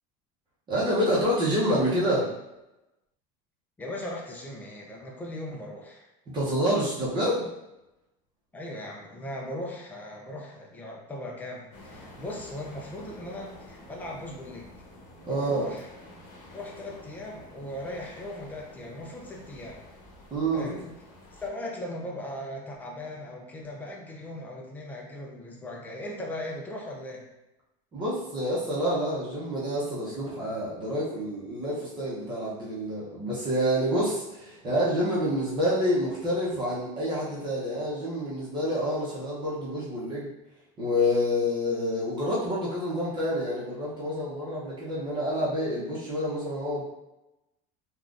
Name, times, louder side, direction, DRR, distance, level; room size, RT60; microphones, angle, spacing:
voice 1, 0.7-2.3 6.3-7.4 15.3-15.6 20.3-20.7 27.9-40.3 40.8-46.8, equal, 25° right, -7 dB, 0.8 m, -28 dB
voice 2, 3.8-6.1 8.5-14.7 15.3-15.9 16.5-19.8 20.5-20.9 21.3-27.3, left 1 dB, 10° left, -1 dB, 0.4 m, -38 dB
sound 1, 11.7-21.5, left 1 dB, 65° left, 1.0 m, -49 dB
3.6 x 2.3 x 2.5 m, 0.93 s
cardioid pair, 155°, 18 cm